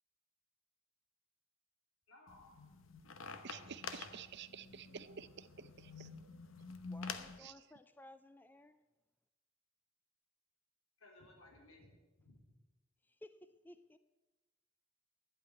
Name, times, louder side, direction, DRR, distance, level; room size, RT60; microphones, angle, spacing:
voice 1, 2.1-2.6 11.0-12.6, left 2 dB, 85° left, 0 dB, 3.8 m, -61 dB
sound 1, 2.3-7.4, left 5 dB, 65° left, 0.9 m, -48 dB
voice 2, 3.4-6.2 7.4-7.5, right 7 dB, 55° right, 14 dB, 0.6 m, -51 dB
voice 3, 6.9-8.8 13.0-14.0, left 1 dB, 10° left, 11 dB, 0.4 m, -58 dB
10.5 x 8.5 x 9.4 m, 1.1 s
head